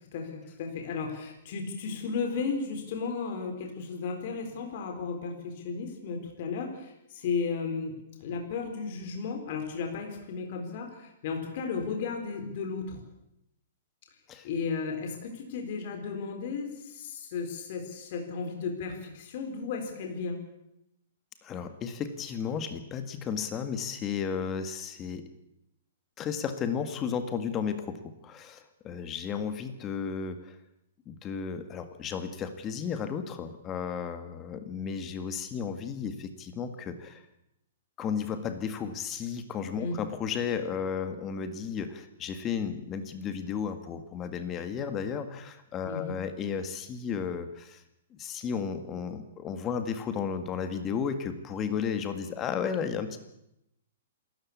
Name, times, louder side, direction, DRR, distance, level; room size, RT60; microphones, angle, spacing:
voice 1, 0.1-13.0 14.4-20.4 39.8-40.0 45.8-46.1, left 5 dB, 45° left, 4 dB, 3.9 m, -34 dB
voice 2, 21.4-25.3 26.2-30.6 31.1-37.2 38.0-47.8 48.1-53.2, left 6 dB, 20° left, 9 dB, 1.8 m, -33 dB
27.0 x 13.5 x 8.5 m, 0.83 s
hypercardioid pair, 165°, 0 cm